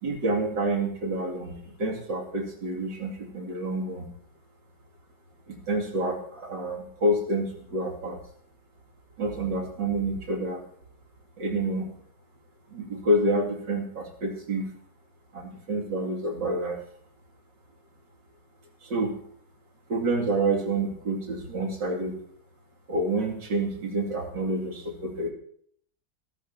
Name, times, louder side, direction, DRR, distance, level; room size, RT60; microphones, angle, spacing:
voice 1, 0.0-4.1 5.5-8.2 9.2-10.6 11.4-11.9 12.7-14.7 15.3-16.8 18.8-19.2 19.9-22.2 22.9-25.3, right 1 dB, 90° right, 1 dB, 3.2 m, -28 dB
23.0 x 13.0 x 2.8 m, 0.62 s
omnidirectional pair, 1.9 m